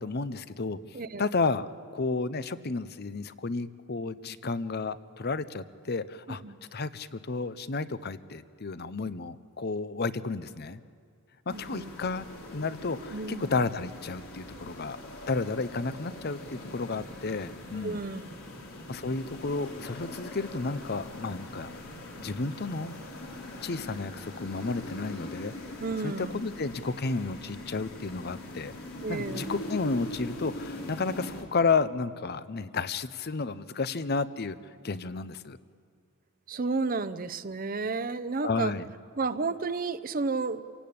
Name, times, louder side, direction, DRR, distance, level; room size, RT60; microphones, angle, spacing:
voice 1, 0.0-0.8 1.2-6.4 6.7-10.8 11.5-12.3 12.5-15.0 15.2-18.0 18.9-21.7 22.2-22.9 23.6-25.5 26.0-28.7 29.1-34.6 34.8-35.6 38.4-38.8, left 4 dB, 50° left, 15 dB, 0.7 m, -32 dB
voice 2, 6.3-6.6 11.5-12.2 13.1-13.5 17.7-18.2 25.8-26.5 29.0-29.5 36.5-38.7 39.2-40.6, right 3 dB, 40° right, 13 dB, 0.7 m, -32 dB
sound 1, 11.5-31.4, left 1 dB, 75° left, 3.5 m, -42 dB
28.5 x 17.5 x 8.6 m, 2.1 s
head